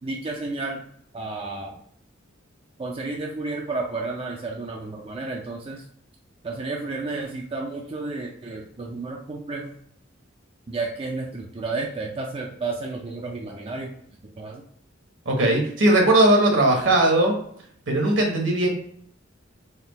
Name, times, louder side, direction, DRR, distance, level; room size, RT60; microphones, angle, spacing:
voice 1, 0.0-0.9 1.1-1.8 2.8-5.8 6.4-9.7 10.7-13.9 14.4-14.6, right 3 dB, 30° right, 0 dB, 0.4 m, -31 dB
voice 2, 15.2-17.4 17.9-18.7, right 1 dB, 70° right, 1 dB, 1.2 m, -19 dB
4.2 x 2.3 x 3.9 m, 0.64 s
head